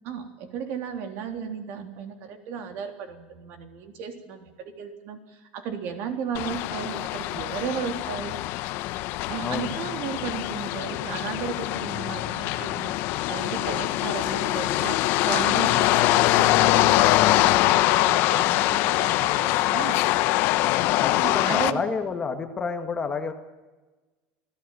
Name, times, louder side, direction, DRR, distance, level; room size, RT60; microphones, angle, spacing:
voice 1, 0.0-8.4 9.3-20.1 21.2-21.8, right 7 dB, 45° right, 6 dB, 3.6 m, -35 dB
sound 1, 6.3-21.7, left 17 dB, 50° left, 1.1 m, -23 dB
voice 2, 9.4-9.7 21.0-23.3, left 5 dB, 15° left, 6 dB, 1.8 m, -29 dB
27.5 x 17.0 x 9.2 m, 1.2 s
cardioid pair, 170°, 5 cm